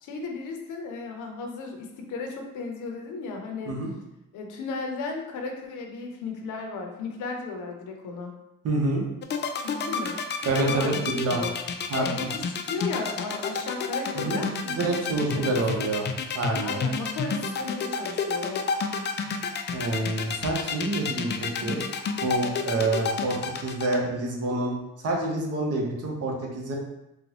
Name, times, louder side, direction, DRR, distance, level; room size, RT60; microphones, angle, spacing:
voice 1, 0.0-3.8 4.3-8.3 9.6-10.2 10.6-11.5 12.0-15.9 16.6-18.7 21.6-21.8, left 4 dB, 80° left, 3 dB, 0.7 m, -35 dB
voice 2, 8.6-9.0 10.4-11.4 11.9-12.3 14.1-16.1 16.3-16.8 19.7-21.8 22.2-23.4 23.6-26.8, right 2 dB, 55° right, -1 dB, 1.0 m, -27 dB
sound 1, 9.2-24.0, left 5 dB, 35° left, 0.4 m, -29 dB
3.9 x 2.2 x 2.9 m, 0.89 s
cardioid pair, 90°, 30 cm